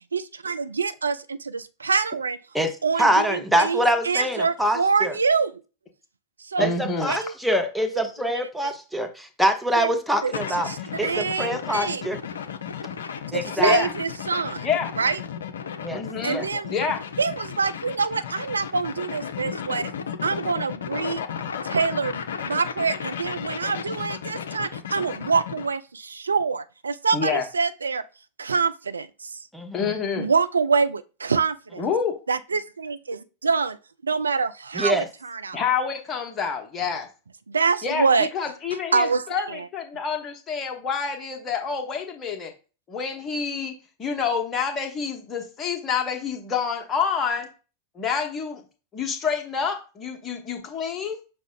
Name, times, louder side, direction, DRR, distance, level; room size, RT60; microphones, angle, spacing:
voice 1, 0.1-2.4 2.8-5.6 6.4-6.7 7.0-7.3 7.9-8.0 8.6-8.7 9.8-9.9 10.2-10.3 10.7-12.1 13.3-14.7 15.0-15.2 16.2-16.8 17.2-19.9 20.2-21.2 21.6-28.0 28.4-29.4 30.2-31.8 32.3-33.8 34.0-35.6 37.5-38.3 38.9-39.7, right 5 dB, 75° right, 0.3 m, -25 dB
voice 2, 3.0-5.1 6.6-10.7 11.0-12.2 13.3-13.8 15.8-16.0 16.3-16.5 29.5-30.0 34.8-35.1, equal, ahead, 0.7 m, -24 dB
voice 3, 6.6-7.1 13.6-13.9 14.6-14.9 15.9-16.4 16.7-17.0 27.1-27.4 29.7-30.3 31.8-32.1 35.5-37.1 37.8-42.5 42.9-43.7 44.0-47.5 47.9-48.6 48.9-51.2, left 6 dB, 25° left, 1.0 m, -27 dB
sound 1, 10.3-25.7, left 7 dB, 65° left, 0.4 m, -34 dB
5.9 x 2.1 x 3.7 m
figure-of-eight pair, 90°, 0 cm